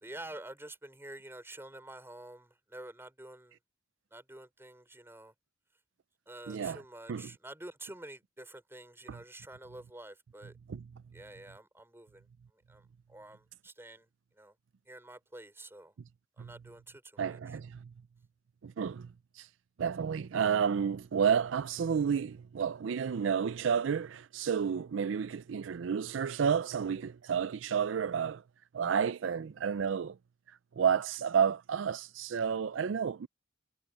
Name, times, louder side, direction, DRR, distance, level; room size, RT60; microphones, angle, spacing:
voice 1, 0.0-3.6 4.1-5.3 6.3-10.5 11.1-12.2 12.7-12.8 13.1-14.1 14.4-14.5 14.9-15.9 16.4-17.4, right 1 dB, 15° right, 4.3 m, -48 dB
voice 2, 6.5-6.8 7.1-7.3 9.1-9.2 10.7-10.9 16.4-16.5 17.2-17.8 18.6-19.1 19.4-19.5 19.8-28.4 28.7-30.2 30.8-33.3, right 7 dB, 75° right, 0.4 m, -31 dB
head